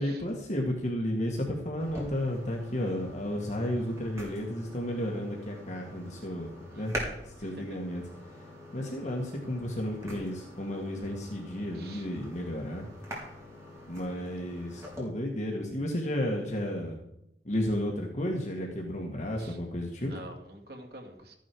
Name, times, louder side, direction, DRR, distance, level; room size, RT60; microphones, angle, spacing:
voice 1, 0.0-7.0 7.2-8.0 8.7-12.9 13.9-17.0 17.4-20.1, left 1 dB, 40° left, 0 dB, 1.9 m, -33 dB
sound 1, 1.8-15.0, equal, 15° right, 3.6 m, -44 dB
voice 2, 6.7-7.1 7.4-7.8 11.7-12.1 19.4-19.6 20.1-21.4, right 1 dB, 65° right, 2 dB, 2.5 m, -47 dB
14.0 x 10.5 x 4.7 m, 0.81 s
head